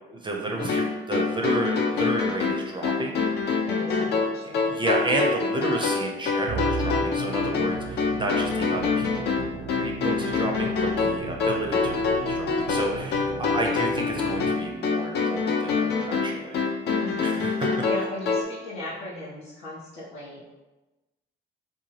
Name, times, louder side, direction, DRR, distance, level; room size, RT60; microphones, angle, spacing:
voice 1, 0.1-3.2 4.4-16.6 17.2-17.7, right 2 dB, 25° right, 1 dB, 0.5 m, -31 dB
sound 1, 0.6-18.4, left 4 dB, 60° left, 0.4 m, -26 dB
voice 2, 3.6-4.8 17.0-20.4, left 1 dB, 85° left, -7 dB, 0.9 m, -37 dB
Musical instrument, 6.5-15.0, right 5 dB, 85° right, 0.5 m, -36 dB
2.7 x 2.2 x 3.1 m, 1.1 s
cardioid pair, 90°, 20 cm